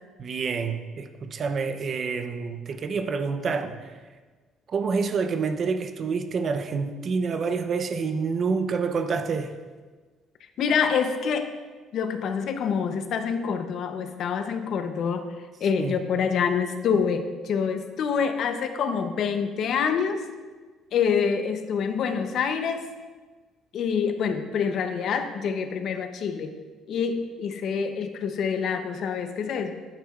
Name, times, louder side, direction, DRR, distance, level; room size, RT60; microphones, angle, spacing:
voice 1, 0.2-3.9 4.7-9.5 15.8-16.0, right 5 dB, 35° right, 0.6 m, -28 dB
voice 2, 10.6-11.5 11.9-15.3 15.6-20.2 20.9-22.9 23.7-26.6 26.9-29.7, left 6 dB, 50° left, 0.7 m, -26 dB
10.0 x 9.2 x 2.4 m
cardioid pair, 160°, 0 cm